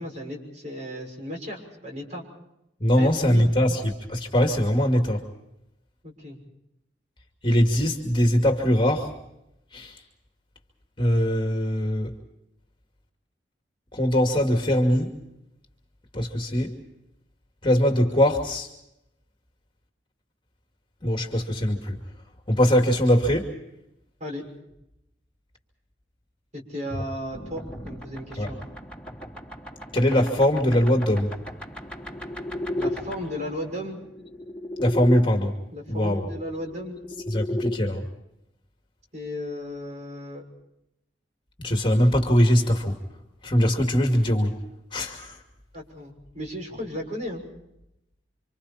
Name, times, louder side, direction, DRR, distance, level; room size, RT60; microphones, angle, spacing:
voice 1, 0.0-2.2 2.9-3.5 6.0-6.4 24.2-24.4 26.5-28.7 32.8-34.0 35.7-37.0 39.1-40.4 45.7-47.4, left 1 dB, 40° right, 1 dB, 6.3 m, -35 dB
voice 2, 2.8-5.2 7.4-9.1 9.7-10.0 11.0-12.1 13.9-15.1 16.1-16.7 17.6-18.7 21.0-22.0 22.5-23.5 28.4-28.5 29.9-31.3 34.8-35.5 35.9-36.3 37.3-38.0 41.6-43.0 43.4-44.6 44.9-45.4, equal, 25° left, 3 dB, 2.5 m, -22 dB
sound 1, 27.3-35.2 36.5-37.8, left 1 dB, 5° left, 3.4 m, -35 dB
29.5 x 26.0 x 4.4 m, 0.84 s
head